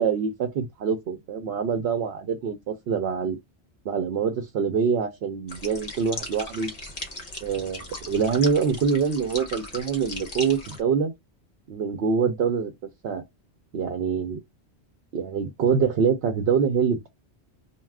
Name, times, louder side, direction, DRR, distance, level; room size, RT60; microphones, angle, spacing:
voice 1, 0.0-3.4 3.9-6.7 7.4-11.1 11.7-12.7 13.0-13.2 13.7-14.4 15.1-17.0, right 6 dB, 70° right, 0.8 m, -25 dB
sound 1, 5.5-10.8, left 1 dB, 40° left, 0.9 m, -37 dB
2.3 x 2.3 x 3.3 m
omnidirectional pair, 1.1 m